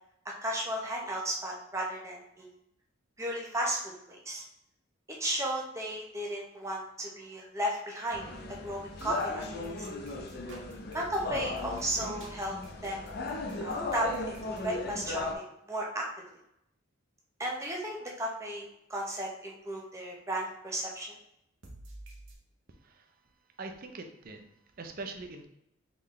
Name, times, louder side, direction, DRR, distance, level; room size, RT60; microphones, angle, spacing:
voice 1, 0.4-2.5 3.2-3.8 4.1-4.4 5.2-9.4 9.8-9.9 10.9-13.1 13.6-15.3 15.7-16.1 17.4-21.1, right 1 dB, 15° right, -2 dB, 0.8 m, -34 dB
sound 1, 8.1-15.3, left 3 dB, 50° left, 0.5 m, -37 dB
sound 2, 8.9-14.6 21.6-22.3, right 2 dB, 65° right, 0.9 m, -51 dB
voice 2, 22.8-23.2 23.6-25.5, right 3 dB, 45° right, 5 dB, 0.5 m, -43 dB
3.8 x 3.7 x 3.1 m, 0.78 s
head